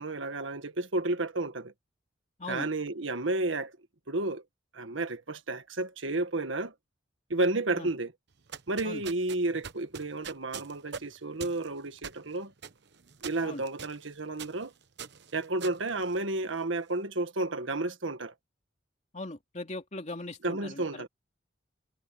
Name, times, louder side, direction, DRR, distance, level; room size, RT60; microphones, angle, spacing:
voice 1, 0.0-1.7 2.5-3.8 4.1-4.4 4.7-6.7 7.3-8.1 8.7-12.5 13.2-14.7 15.3-18.3 20.4-21.1, right 2 dB, 80° right, 1.7 m, -31 dB
sound 1, 8.3-16.7, right 7 dB, 60° right, 1.0 m, -45 dB
voice 2, 19.1-21.0, left 2 dB, 35° left, 2.5 m, -39 dB
head